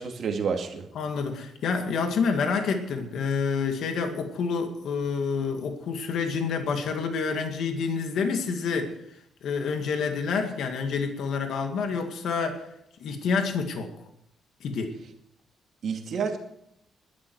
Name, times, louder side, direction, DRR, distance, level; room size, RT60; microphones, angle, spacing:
voice 1, 0.0-0.8 15.8-16.4, right 6 dB, 45° right, 3 dB, 2.3 m, -29 dB
voice 2, 0.9-9.0 9.4-12.7 13.0-13.9 14.6-15.0, left 5 dB, 60° left, 5 dB, 2.1 m, -28 dB
20.5 x 11.5 x 4.8 m, 0.75 s
cardioid pair, 175°, 0 cm